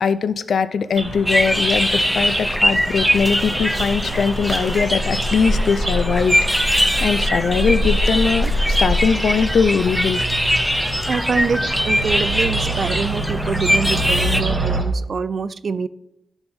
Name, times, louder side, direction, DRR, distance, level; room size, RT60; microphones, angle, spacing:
voice 1, 0.0-10.2, left 6 dB, 65° left, 13 dB, 0.5 m, -21 dB
sound 1, 1.0-14.8, equal, 25° right, 1.3 m, -25 dB
sound 2, 1.2-14.4, equal, ahead, 0.5 m, -22 dB
voice 2, 11.1-15.9, right 5 dB, 50° right, 16 dB, 0.3 m, -25 dB
11.5 x 7.1 x 3.5 m, 0.87 s
wide cardioid pair, 180°, 0 cm